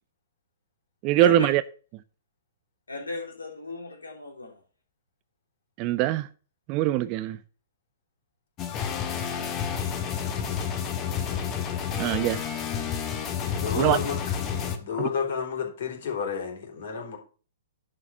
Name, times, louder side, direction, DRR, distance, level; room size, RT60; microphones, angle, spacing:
voice 1, 1.0-1.6 5.8-6.3 6.7-7.4 12.0-12.4 13.8-14.0 15.0-15.1, right 14 dB, 35° right, 0.7 m, -22 dB
voice 2, 2.9-4.6, left 2 dB, 80° left, 3.3 m, -35 dB
sound 1, 8.6-14.8, left 8 dB, 30° left, 1.6 m, -30 dB
voice 3, 13.5-14.2 14.8-17.2, left 6 dB, 55° left, 4.1 m, -30 dB
11.0 x 5.0 x 7.0 m
figure-of-eight pair, 115°, 0 cm